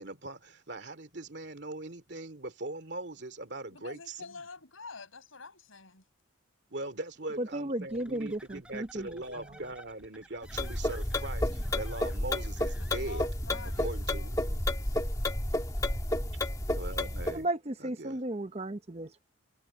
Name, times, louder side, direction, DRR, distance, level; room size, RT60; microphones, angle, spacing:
voice 1, 0.0-4.4 6.7-13.3 13.8-14.6 16.7-17.5 17.8-18.2, right 2 dB, 55° right, 2.7 m, -41 dB
voice 2, 3.7-6.0 12.8-15.0, left 4 dB, 85° left, 5.7 m, -48 dB
voice 3, 7.4-9.6 17.3-19.2, right 1 dB, 30° right, 0.7 m, -35 dB
sound 1, 7.9-13.8, right 1 dB, 5° right, 7.9 m, -54 dB
sound 2, 10.5-17.4, left 1 dB, 15° left, 2.2 m, -31 dB
head